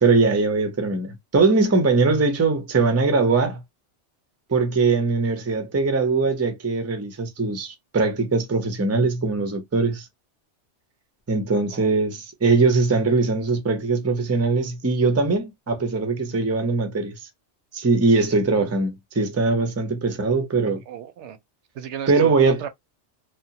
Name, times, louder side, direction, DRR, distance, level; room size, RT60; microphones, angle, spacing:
voice 1, 0.0-3.6 4.5-10.1 11.3-17.2 17.7-20.8 22.1-22.6, right 3 dB, 20° right, 0.5 m, -21 dB
voice 2, 20.9-21.4 21.7-22.7, right 9 dB, 75° right, 0.9 m, -35 dB
2.8 x 2.1 x 2.7 m
omnidirectional pair, 1.2 m